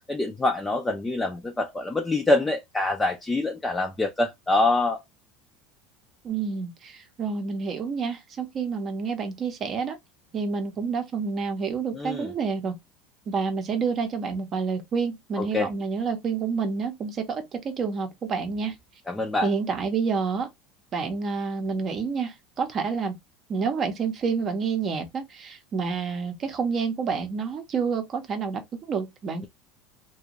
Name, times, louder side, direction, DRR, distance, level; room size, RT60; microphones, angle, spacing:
voice 1, 0.1-5.0 11.9-12.3 15.4-15.7 19.1-19.5, left 2 dB, 10° left, 0.4 m, -25 dB
voice 2, 6.2-10.0 10.3-12.8 13.3-18.8 19.4-20.5 20.9-23.2 23.5-29.5, right 5 dB, 35° right, 0.7 m, -28 dB
2.5 x 2.2 x 2.9 m
supercardioid pair, 135°, 0 cm